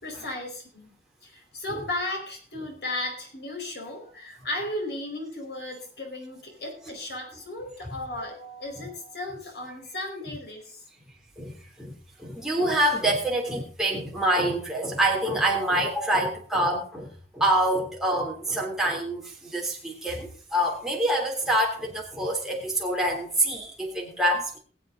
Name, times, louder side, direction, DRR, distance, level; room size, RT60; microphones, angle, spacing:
voice 1, 0.0-10.8, left 1 dB, 70° left, 2 dB, 4.6 m, -35 dB
voice 2, 11.4-11.9 12.2-24.5, right 1 dB, 5° right, -2 dB, 3.3 m, -26 dB
21.0 x 7.8 x 3.9 m, 0.40 s
head